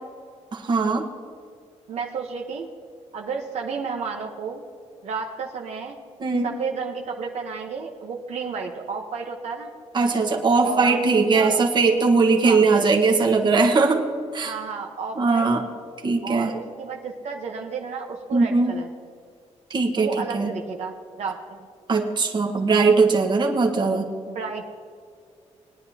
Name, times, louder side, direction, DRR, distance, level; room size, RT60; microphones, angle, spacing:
voice 1, 0.5-1.0 6.2-6.5 9.9-14.0 14.3-14.5 15.2-15.6 16.0-16.5 18.3-18.7 19.7-20.5 21.9-24.1, right 4 dB, 40° right, 2 dB, 1.3 m, -20 dB
voice 2, 1.9-2.7 3.1-4.6 5.0-6.0 6.4-9.7 10.6-11.0 11.3-11.6 12.4-12.6 14.4-15.5 16.2-18.9 20.0-21.4 24.3-24.6, right 5 dB, 65° right, 1 dB, 1.1 m, -32 dB
20.0 x 10.0 x 2.8 m, 2.2 s
cardioid pair, 130°, 12 cm